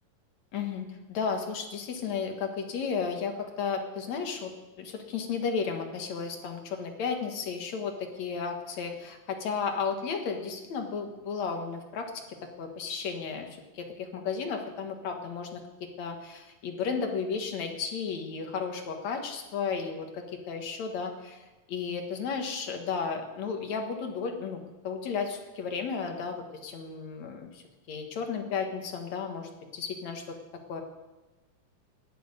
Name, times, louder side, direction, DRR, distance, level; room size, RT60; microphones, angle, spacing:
voice 1, 0.5-4.5 4.8-15.6 16.0-30.4 30.7-30.8, left 5 dB, 60° left, 4 dB, 2.5 m, -34 dB
12.0 x 10.5 x 9.5 m, 1.1 s
omnidirectional pair, 4.0 m